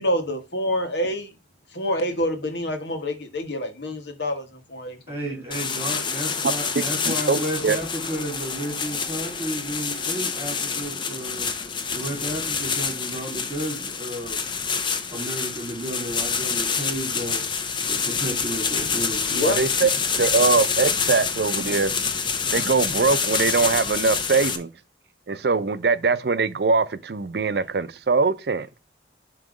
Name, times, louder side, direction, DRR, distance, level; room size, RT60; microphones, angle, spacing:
voice 1, 0.0-1.3 1.7-5.4 19.3-19.6, left 1 dB, 75° left, 1.4 m, -27 dB
voice 2, 5.1-11.5 11.9-14.4 15.1-17.4 17.9-19.5, right 1 dB, 15° right, 3.0 m, -32 dB
sound 1, 5.5-24.6, left 5 dB, 25° left, 0.6 m, -27 dB
voice 3, 7.1-7.8 19.4-19.9 20.2-21.9 22.5-24.7 25.3-28.7, right 4 dB, 65° right, 0.5 m, -22 dB
7.4 x 3.1 x 4.8 m
head